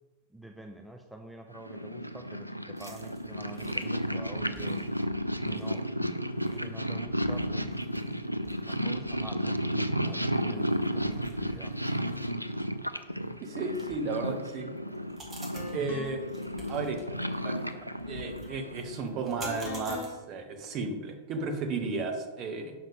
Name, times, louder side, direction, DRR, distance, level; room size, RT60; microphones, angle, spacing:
voice 1, 0.3-4.8 5.5-5.9 6.6-7.9 8.5-11.8, right 1 dB, 5° right, 3 dB, 0.5 m, -47 dB
Purr, 1.6-19.2, equal, 90° right, 0.3 m, -33 dB
sound 1, 2.8-20.1, right 1 dB, 20° right, 1.7 m, -51 dB
voice 2, 13.4-14.7 15.7-16.2 16.7-17.0 17.4-17.6 18.1-22.7, right 3 dB, 35° right, 5 dB, 1.1 m, -33 dB
sound 2, 14.7-14.9 15.5-16.3 19.4-20.2, left 3 dB, 60° left, 1.0 m, -41 dB
7.1 x 5.7 x 3.6 m, 1.2 s
figure-of-eight pair, 90°, 0 cm